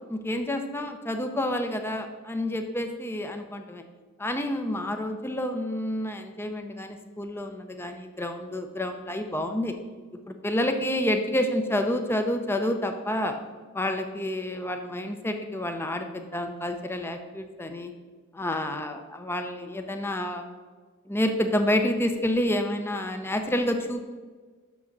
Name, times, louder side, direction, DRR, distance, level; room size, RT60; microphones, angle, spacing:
voice 1, 0.1-3.8 4.2-9.7 10.3-13.3 13.7-17.9 18.3-20.4 21.1-24.0, left 1 dB, 10° left, 5 dB, 0.6 m, -29 dB
6.4 x 6.2 x 7.2 m, 1.4 s
head